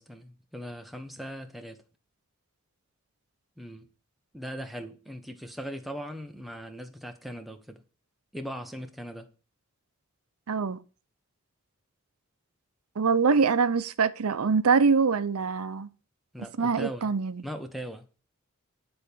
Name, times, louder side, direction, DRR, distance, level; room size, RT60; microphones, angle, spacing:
voice 1, 0.0-1.8 3.6-3.9 4.3-7.8 8.3-9.3 16.3-17.1 17.4-18.1, equal, ahead, 0.8 m, -39 dB
voice 2, 10.5-10.8 13.0-15.9 16.6-17.4, right 5 dB, 90° right, 0.6 m, -24 dB
9.9 x 4.3 x 6.8 m
head